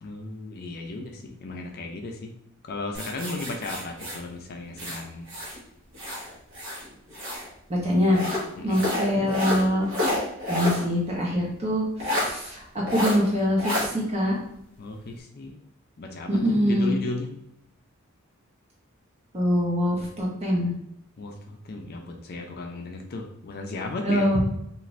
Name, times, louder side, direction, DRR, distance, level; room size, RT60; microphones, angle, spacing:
voice 1, 0.0-2.3 2.6-5.3 8.6-8.8 14.8-15.6 16.0-17.3 21.2-24.3, left 2 dB, 50° left, 2 dB, 0.4 m, -35 dB
sound 1, 2.9-5.6 5.9-7.5 8.1-10.9 11.2-11.3 12.0-12.3 12.9-13.2 13.6-13.9, left 1 dB, 60° right, 1.0 m, -29 dB
voice 2, 7.7-8.2 8.6-9.9 10.5-14.3 16.3-16.9 19.3-20.7 24.0-24.4, equal, 30° right, -3 dB, 0.8 m, -24 dB
2.5 x 2.5 x 3.1 m, 0.77 s
head